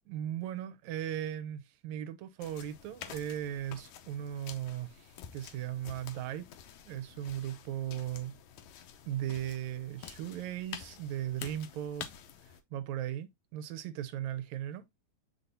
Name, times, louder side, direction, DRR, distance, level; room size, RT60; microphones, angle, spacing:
voice 1, 0.1-6.5 6.9-8.3 9.1-12.1 12.7-14.8, right 11 dB, 80° right, 2.0 m, -37 dB
sound 1, 2.4-12.6, left 9 dB, 80° left, 2.1 m, -49 dB
6.9 x 5.9 x 2.7 m
omnidirectional pair, 3.3 m